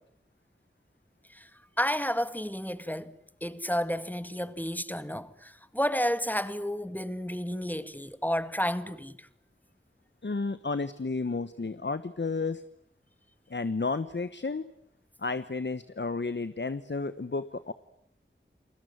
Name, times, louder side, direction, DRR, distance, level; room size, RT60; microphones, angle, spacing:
voice 1, 1.8-3.1 3.4-9.3, equal, 10° left, 2.0 m, -31 dB
voice 2, 10.2-12.6 13.5-14.7 15.2-17.7, left 3 dB, 65° left, 1.1 m, -32 dB
30.0 x 20.5 x 9.5 m
wide cardioid pair, 40°, 20 cm